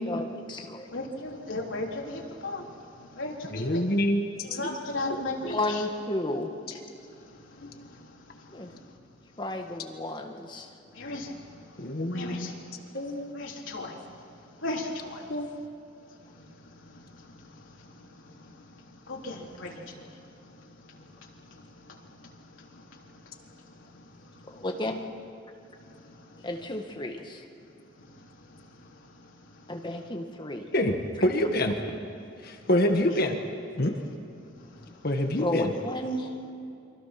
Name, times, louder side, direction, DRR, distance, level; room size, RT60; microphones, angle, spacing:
voice 1, 0.0-0.9 4.5-4.7 4.9-5.2 5.4-6.5 8.5-8.7 9.4-10.7 24.5-25.1 26.4-27.4 29.7-30.7 35.4-36.3, left 1 dB, 25° left, 3 dB, 1.7 m, -32 dB
voice 2, 0.9-2.7 3.2-3.8 4.6-5.8 11.0-11.3 12.1-12.5 13.3-14.0 14.6-15.2 19.1-19.8, left 2 dB, 90° left, -1 dB, 3.5 m, -35 dB
voice 3, 3.5-5.2 7.6-7.7 11.8-12.5 12.9-13.3 15.3-15.5 30.7-31.8 32.4-33.4 33.8-34.0 35.0-35.7, left 1 dB, 50° left, 4 dB, 1.7 m, -27 dB
29.5 x 24.0 x 6.0 m, 2.7 s
head